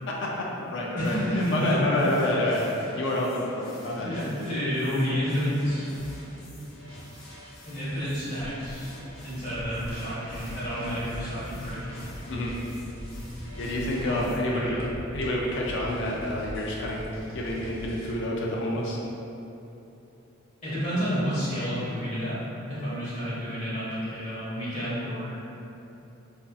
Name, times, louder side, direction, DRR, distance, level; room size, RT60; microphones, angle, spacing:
voice 1, 0.1-4.1 12.3-12.6 13.6-14.8 15.1-19.0, left 1 dB, 60° left, -2 dB, 0.4 m, -28 dB
voice 2, 0.9-1.8 4.0-5.9 7.7-8.9 9.2-11.9 14.0-14.9 20.6-22.4 22.7-25.4, equal, 35° left, -11 dB, 1.3 m, -30 dB
sound 1, 1.0-14.4, left 1 dB, 85° left, 0.8 m, -49 dB
sound 2, 5.6-18.1, equal, 80° right, 0.9 m, -42 dB
4.3 x 2.6 x 2.3 m, 2.9 s
head